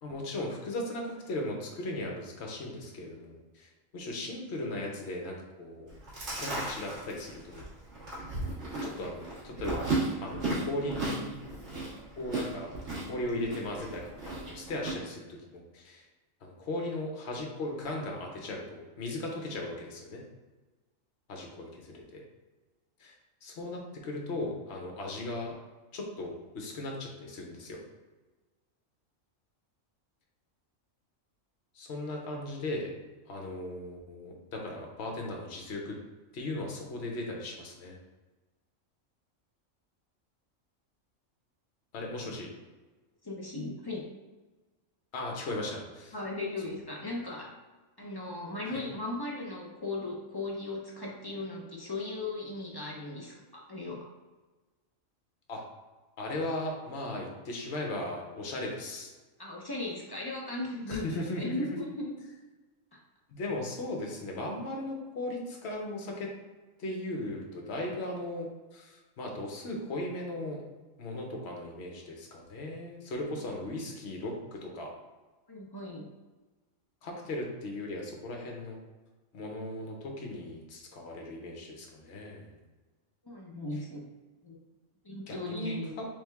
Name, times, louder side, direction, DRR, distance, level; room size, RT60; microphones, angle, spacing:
voice 1, 0.0-5.9 6.4-7.6 8.8-11.4 12.2-12.7 13.1-16.0 16.4-20.2 21.3-22.2 23.0-23.1 23.4-25.5 25.9-27.8 31.7-32.9 33.3-36.0 36.3-38.0 41.9-42.5 45.1-46.1 48.7-48.8 55.5-55.6 56.2-59.1 60.9-61.7 63.3-66.3 66.8-70.6 71.0-74.9 77.0-78.8 79.3-82.6 85.3-86.1, left 1 dB, 60° left, 0 dB, 1.0 m, -37 dB
Chewing mastication, 5.9-14.9, right 2 dB, 60° right, 1.6 m, -35 dB
voice 2, 43.2-44.1 46.1-47.5 48.0-54.1 59.4-62.3 73.3-73.5 75.5-76.1 83.2-84.0 84.4-84.6 85.0-85.9, left 2 dB, 35° left, -3 dB, 0.4 m, -37 dB
3.5 x 3.3 x 3.4 m, 1.2 s
omnidirectional pair, 1.4 m